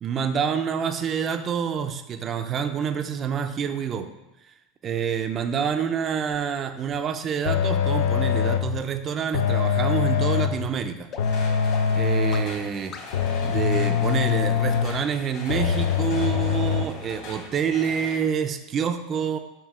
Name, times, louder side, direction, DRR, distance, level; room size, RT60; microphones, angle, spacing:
voice 1, 0.0-4.1 4.8-11.1 11.9-12.9 13.4-19.4, right 7 dB, 30° right, 8 dB, 0.5 m, -27 dB
sound 1, 6.3-6.4 6.9-7.0 7.5-7.6 8.1-8.2 8.7-8.8 9.3-9.4 9.9-10.0 10.5-10.6 11.1-11.2 11.7-11.8 12.3-12.4 12.9-13.0, left 6 dB, 35° left, 0.6 m, -41 dB
sound 2, 7.4-8.8 9.3-10.7 11.2-12.6 13.1-15.0 15.5-16.8, left 7 dB, 75° left, 0.6 m, -23 dB
sound 3, 11.2-18.2, left 3 dB, 50° left, 2.2 m, -41 dB
7.3 x 2.7 x 5.3 m, 1.0 s
supercardioid pair, 140°, 0 cm